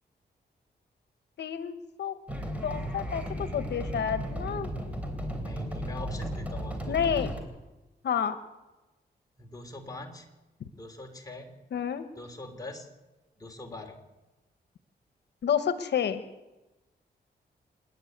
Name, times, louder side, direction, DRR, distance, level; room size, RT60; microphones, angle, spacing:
voice 1, 1.4-1.7 2.0-2.2 2.6-4.7 6.9-7.3 8.0-8.4 11.7-12.1 15.4-16.2, left 8 dB, 85° left, 11 dB, 1.1 m, -29 dB
sound 1, 2.3-7.4, equal, 10° right, 3.5 m, -35 dB
voice 2, 4.8-7.0 9.4-10.3 10.7-11.6 12.2-12.9 13.4-14.0, left 2 dB, 20° left, 2 dB, 3.1 m, -43 dB
28.0 x 10.5 x 9.3 m, 1.1 s
wide cardioid pair, 120°, 17 cm